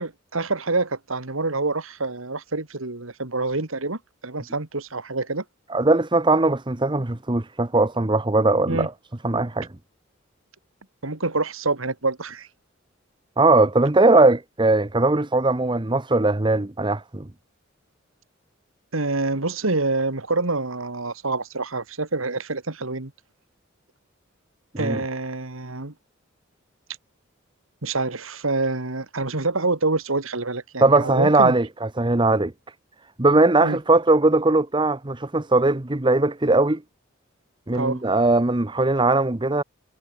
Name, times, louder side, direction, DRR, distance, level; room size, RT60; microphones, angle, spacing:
voice 1, 0.0-5.4 8.7-8.9 11.0-12.5 18.9-23.1 24.8-25.9 27.8-31.6 33.6-33.8 37.7-38.0, right 3 dB, 90° right, 2.4 m, -26 dB
voice 2, 5.7-8.9 9.2-9.7 13.4-17.3 24.7-25.0 30.8-32.5 33.2-36.8 37.7-39.6, right 2 dB, 25° right, 1.0 m, -19 dB
head